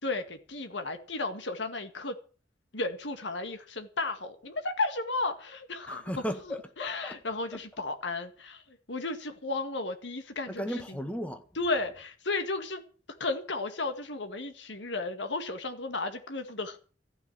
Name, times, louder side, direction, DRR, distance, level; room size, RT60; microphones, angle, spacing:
voice 1, 0.0-2.1 2.7-6.1 6.8-11.0 11.6-12.8 13.2-16.8, left 3 dB, 90° left, 1.9 m, -34 dB
voice 2, 5.8-7.2 7.5-7.6 10.5-11.4, equal, 10° left, 1.7 m, -36 dB
14.5 x 6.6 x 9.8 m
head